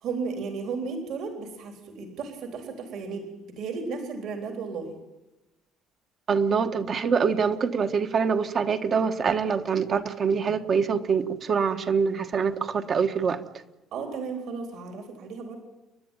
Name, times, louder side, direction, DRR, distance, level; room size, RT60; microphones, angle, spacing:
voice 1, 0.0-5.0 13.9-15.6, right 4 dB, 55° right, 4 dB, 3.7 m, -34 dB
voice 2, 6.3-13.4, right 6 dB, 35° right, 9 dB, 1.3 m, -25 dB
29.5 x 11.5 x 9.2 m, 1.0 s
cardioid pair, 165°, 0 cm